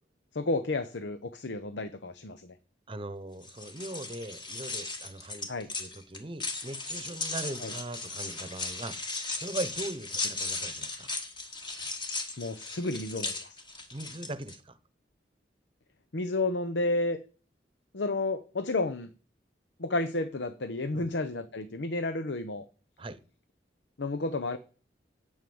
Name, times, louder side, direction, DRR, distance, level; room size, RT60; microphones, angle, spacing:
voice 1, 0.3-2.5 5.5-5.7 7.6-7.7 12.4-13.6 16.1-17.2 17.9-19.1 19.8-22.6 24.0-24.6, left 2 dB, 90° left, 11 dB, 0.8 m, -31 dB
voice 2, 2.9-5.5 5.8-11.1 13.9-14.8 20.9-21.1 23.0-23.2, right 2 dB, 30° right, 14 dB, 0.9 m, -40 dB
sound 1, 3.4-14.6, left 3 dB, 25° left, 1.6 m, -37 dB
9.5 x 8.3 x 7.1 m, 0.39 s
head